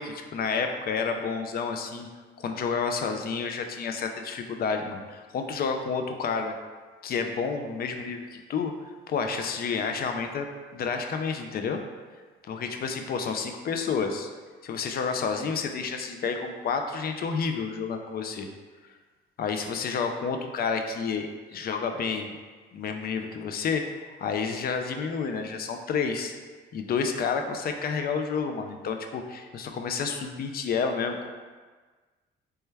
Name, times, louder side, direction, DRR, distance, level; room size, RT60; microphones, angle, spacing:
voice 1, 0.0-2.1 2.4-6.5 7.0-8.7 9.1-11.8 12.5-14.3 14.6-18.5 19.4-22.4 22.7-23.8 24.2-26.3 26.7-31.3, left 5 dB, 50° left, 5 dB, 0.4 m, -30 dB
3.3 x 2.1 x 3.3 m, 1.4 s
cardioid pair, 90°, 20 cm